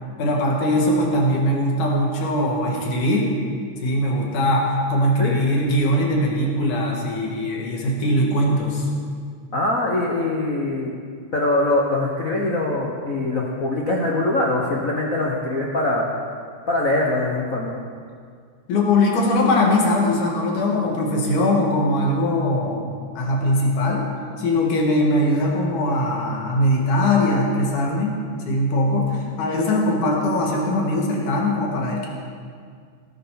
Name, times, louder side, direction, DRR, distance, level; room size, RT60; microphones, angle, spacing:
voice 1, 0.2-3.3 3.8-8.9 18.7-22.9 23.1-24.1 24.4-28.1 28.4-32.1, left 1 dB, 85° left, -2 dB, 3.4 m, -21 dB
voice 2, 9.5-10.9 11.3-16.1 16.7-17.7, left 2 dB, 65° left, -3 dB, 0.8 m, -22 dB
17.5 x 8.2 x 5.8 m, 2.1 s
omnidirectional pair, 3.4 m